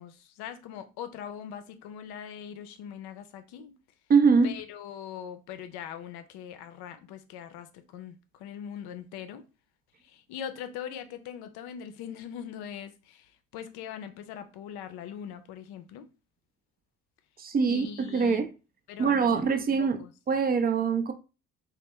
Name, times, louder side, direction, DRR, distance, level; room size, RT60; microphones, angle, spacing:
voice 1, 0.0-3.7 4.4-9.4 10.0-16.1 17.7-18.4 18.9-20.1, left 9 dB, 60° left, 0.6 m, -41 dB
voice 2, 4.1-4.6 17.4-18.5 19.0-20.0 20.3-21.1, right 5 dB, 20° right, 0.4 m, -23 dB
2.9 x 2.1 x 3.5 m
figure-of-eight pair, 45°, 44 cm